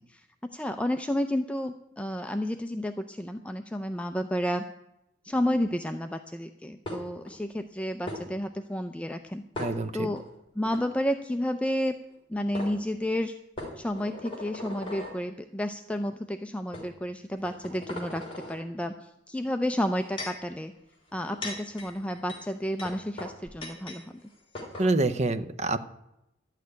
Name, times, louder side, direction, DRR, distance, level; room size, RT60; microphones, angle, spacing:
voice 1, 0.5-4.7 5.2-9.4 9.9-10.2 10.6-11.9 12.3-13.4 13.8-18.2 18.5-20.7 21.1-24.1, equal, 5° left, 7 dB, 0.5 m, -31 dB
sound 1, 6.9-7.3 8.1-8.2 9.5-10.2 10.6-10.8 12.1-12.2 12.5-12.7 13.6-15.2 15.9-16.1 16.7-16.9 17.4-18.6 19.7-20.5 21.1-24.0 24.3-24.4 24.5-24.9, left 1 dB, 30° left, 3.7 m, -39 dB
voice 2, 9.6-10.1 24.8-25.8, right 2 dB, 35° right, 11 dB, 0.7 m, -26 dB
12.0 x 6.6 x 9.4 m, 0.86 s
head